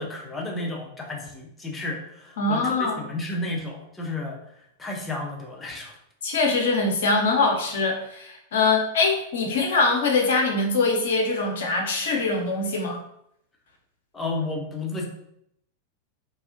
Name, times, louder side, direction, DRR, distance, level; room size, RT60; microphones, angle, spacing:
voice 1, 0.0-4.4 4.8-6.0 14.1-15.0, left 2 dB, 10° left, -1 dB, 0.6 m, -32 dB
voice 2, 2.4-3.0 6.2-13.0, left 3 dB, 60° left, 1 dB, 0.5 m, -23 dB
2.4 x 2.0 x 2.5 m, 0.73 s
figure-of-eight pair, 90°, 0 cm